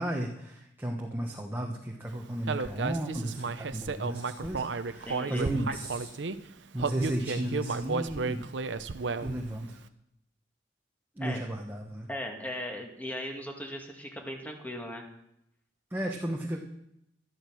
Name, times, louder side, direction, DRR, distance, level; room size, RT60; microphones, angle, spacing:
voice 1, 0.0-6.1 6.7-8.5 9.2-9.8 11.2-12.1 15.9-16.6, right 1 dB, 10° right, 0 dB, 1.1 m, -34 dB
Human voice, 2.5-6.4 6.8-9.5, right 4 dB, 70° right, 0.7 m, -33 dB
voice 2, 5.1-5.4 5.7-5.8 11.2-11.4 12.1-15.1, left 1 dB, 10° left, 2 dB, 2.0 m, -38 dB
12.5 x 11.5 x 6.2 m, 0.80 s
head